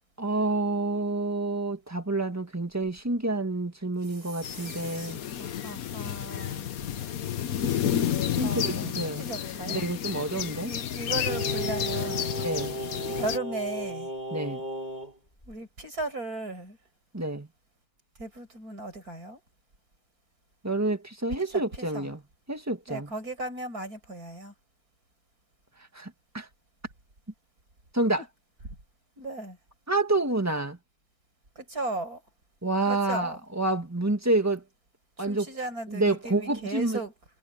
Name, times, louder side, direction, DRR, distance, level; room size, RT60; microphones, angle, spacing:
voice 1, 0.2-5.2 8.4-9.2 9.7-10.7 12.4-12.7 14.3-14.6 17.1-17.5 20.6-22.2 22.5-23.1 25.9-26.5 27.9-28.2 29.9-30.8 32.6-34.6 35.2-35.5 35.9-37.0, right 2 dB, 10° right, 1.6 m, -28 dB
voice 2, 4.0-6.7 8.3-9.9 10.6-12.3 13.1-14.1 15.5-16.8 18.2-19.4 21.4-22.1 22.9-24.5 28.2-28.3 28.6-28.8 29.2-29.6 31.6-32.2 32.9-33.4 35.2-37.1, right 2 dB, 40° right, 6.9 m, -37 dB
sound 1, 4.4-13.4, left 10 dB, 55° left, 1.1 m, -31 dB
Singing, 11.3-15.1 15.4-15.5, equal, 20° left, 6.3 m, -34 dB
omnidirectional pair, 2.3 m